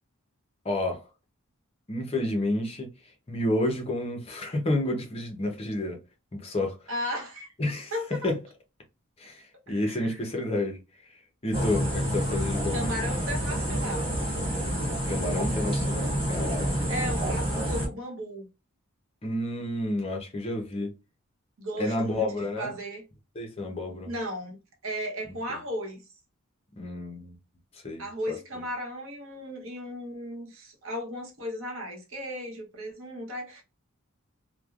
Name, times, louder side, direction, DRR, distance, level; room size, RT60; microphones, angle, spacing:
voice 1, 0.6-1.0 1.9-2.9 3.3-6.0 6.3-6.9 7.6-7.9 8.2-8.4 9.2-10.8 11.4-12.8 15.1-16.9 19.2-20.9 21.8-22.7 23.3-24.1 26.8-27.4 27.7-28.1, left 1 dB, 25° left, 0.6 m, -30 dB
voice 2, 6.9-7.5 7.9-8.3 9.7-10.2 12.7-14.2 16.9-18.5 21.6-22.3 22.6-23.0 24.0-26.1 28.0-33.6, equal, 70° right, 0.9 m, -35 dB
sound 1, 11.5-17.9, equal, 25° right, 1.3 m, -28 dB
3.1 x 2.1 x 2.3 m
head